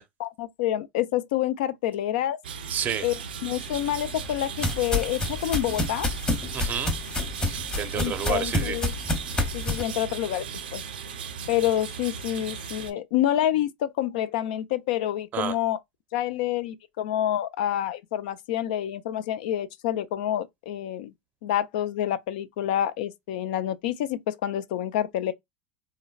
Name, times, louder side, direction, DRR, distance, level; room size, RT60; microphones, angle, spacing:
voice 1, 0.2-2.4 3.0-3.1 3.4-6.1 7.9-8.9 9.5-10.4 10.7-10.8 11.5-15.8 16.1-21.1 21.4-25.3, left 12 dB, 70° left, 0.4 m, -28 dB
sound 1, 2.4-12.9, right 6 dB, 85° right, 0.6 m, -37 dB
voice 2, 2.7-3.1 6.5-6.9 7.5-8.8 15.3-15.6, right 8 dB, 35° right, 0.5 m, -30 dB
sound 2, 3.7-9.8, left 2 dB, 20° left, 0.9 m, -29 dB
3.7 x 2.1 x 2.3 m
hypercardioid pair, 95°, 5 cm